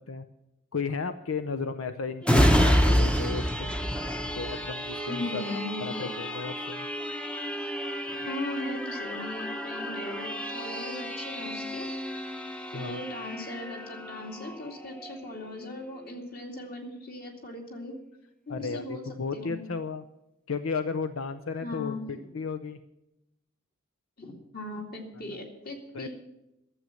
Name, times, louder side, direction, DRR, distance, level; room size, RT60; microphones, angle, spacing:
voice 1, 0.7-3.7 4.3-6.9 8.1-8.2 12.7-13.0 18.5-20.0 20.5-22.8 25.3-25.4 25.9-26.1, left 4 dB, 85° left, 9 dB, 0.6 m, -34 dB
sound 1, 2.2-15.6 16.0-16.1, equal, 5° left, 0.8 m, -29 dB
voice 2, 5.1-6.1 8.1-11.9 12.7-17.9 18.5-19.0 19.3-19.6 21.6-22.2 24.2-26.1, left 2 dB, 50° left, 2 dB, 2.5 m, -38 dB
12.5 x 7.7 x 9.4 m, 0.89 s
head